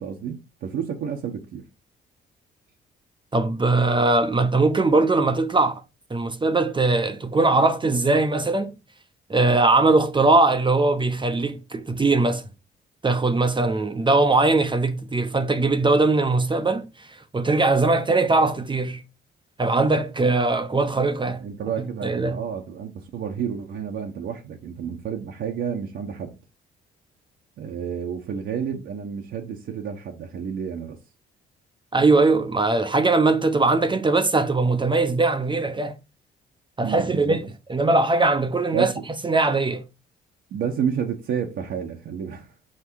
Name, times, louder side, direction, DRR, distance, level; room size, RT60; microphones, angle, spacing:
voice 1, 0.0-1.6 21.2-26.3 27.6-31.0 36.8-37.4 38.7-39.0 40.5-42.7, right 7 dB, 70° right, 1.3 m, -30 dB
voice 2, 3.3-5.8 6.1-8.7 9.3-12.4 13.0-17.1 17.3-19.0 19.6-21.4 21.8-22.4 31.9-36.0 36.8-38.9 39.2-39.8, right 3 dB, 25° right, 0.9 m, -20 dB
6.4 x 4.7 x 4.7 m
cardioid pair, 90°, 20 cm